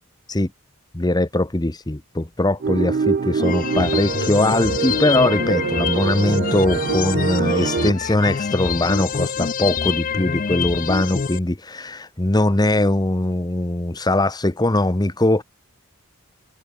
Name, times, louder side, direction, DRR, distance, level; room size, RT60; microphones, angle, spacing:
voice 1, 0.9-15.4, left 1 dB, 20° left, 1.0 m, -21 dB
sound 1, 2.6-7.9, right 5 dB, 40° right, 0.4 m, -24 dB
sound 2, 3.4-11.4, left 6 dB, 40° left, 0.5 m, -26 dB
head